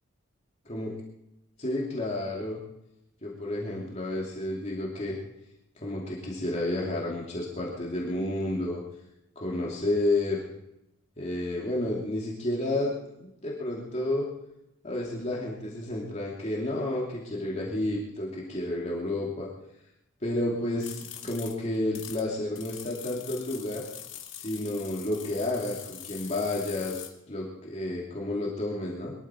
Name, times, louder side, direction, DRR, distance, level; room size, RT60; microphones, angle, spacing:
voice 1, 1.6-2.6 3.2-5.2 5.8-8.8 9.4-10.4 11.2-14.3 14.8-19.5 20.2-23.8 24.4-29.1, left 1 dB, 35° left, -3 dB, 2.7 m, -31 dB
sound 1, 20.8-22.2 22.6-27.1, left 10 dB, 65° left, 2.1 m, -43 dB
22.5 x 13.5 x 4.5 m, 0.86 s
head